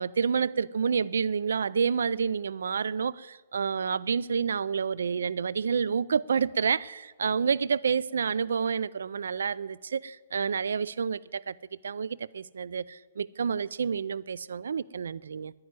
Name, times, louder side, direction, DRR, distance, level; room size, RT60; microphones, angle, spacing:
voice 1, 0.0-11.6 11.8-15.5, right 6 dB, 80° right, 0.4 m, -29 dB
10.5 x 9.6 x 9.2 m
hypercardioid pair, 140°, 0 cm